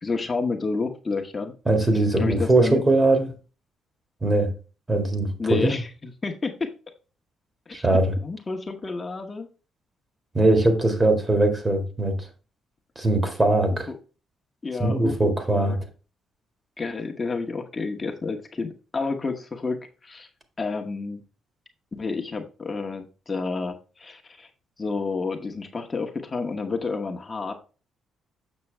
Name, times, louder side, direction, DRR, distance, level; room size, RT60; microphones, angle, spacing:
voice 1, 0.0-1.5 2.2-2.8 5.4-6.5 7.8-7.9 8.2-9.5 13.9-14.0 14.6-15.8 16.8-19.8 20.0-20.3 20.6-21.2 21.9-24.5 24.8-27.5, left 4 dB, 30° left, 1.1 m, -30 dB
voice 2, 1.7-3.3 4.2-4.5 4.9-5.8 7.7-8.1 10.3-12.2 13.0-13.9 14.8-15.8, right 2 dB, 20° right, 1.9 m, -21 dB
7.2 x 6.0 x 3.3 m
cardioid pair, 90°, 0 cm